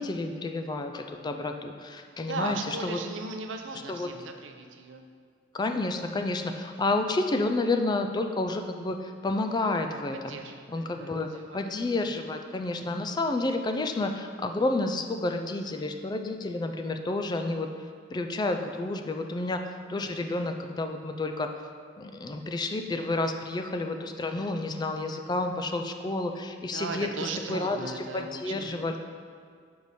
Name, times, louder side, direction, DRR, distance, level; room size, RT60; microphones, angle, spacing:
voice 1, 0.0-3.0 3.9-4.1 5.5-10.4 10.7-17.7 18.1-19.6 19.9-21.5 22.0-27.1 27.5-29.0, left 2 dB, 20° left, 6 dB, 0.3 m, -30 dB
voice 2, 2.3-5.0 10.1-11.7 12.0-12.1 23.4-23.5 26.7-28.7, right 3 dB, 80° right, 5 dB, 0.6 m, -37 dB
6.7 x 4.7 x 4.1 m, 2.1 s
head